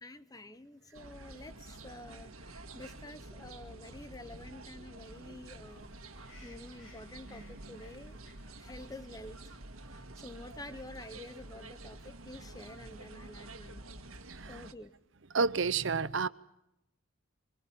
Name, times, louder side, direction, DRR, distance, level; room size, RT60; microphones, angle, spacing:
voice 1, 0.0-5.9 6.4-9.6 9.9-13.8 14.5-14.9, left 1 dB, 20° left, 0.9 m, -49 dB
sound 1, 0.9-14.7, right 2 dB, 85° right, 2.0 m, -49 dB
sound 2, 5.7-13.0, left 2 dB, 70° left, 6.7 m, -63 dB
voice 2, 14.3-14.6 15.3-16.3, right 5 dB, 60° right, 0.9 m, -30 dB
25.0 x 25.0 x 7.4 m
head